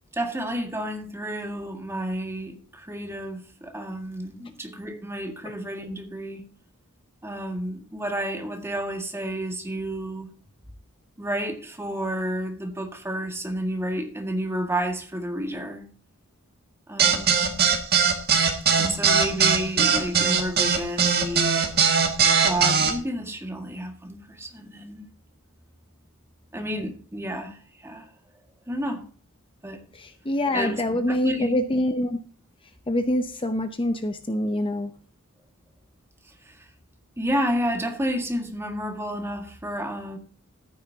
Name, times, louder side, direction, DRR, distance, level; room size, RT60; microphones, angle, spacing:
voice 1, 0.1-6.4 7.2-10.3 11.2-15.9 16.9-17.5 18.8-21.7 22.4-25.1 26.5-28.1 28.7-29.1 29.6-29.8 30.5-30.8 31.1-31.6 36.3-36.7 37.2-40.2, right 1 dB, 10° right, 1.8 m, -30 dB
sound 1, 17.0-22.9, right 6 dB, 50° right, 2.0 m, -20 dB
voice 2, 29.9-32.2 32.9-34.9, left 1 dB, 25° left, 0.7 m, -25 dB
14.0 x 9.5 x 2.8 m
head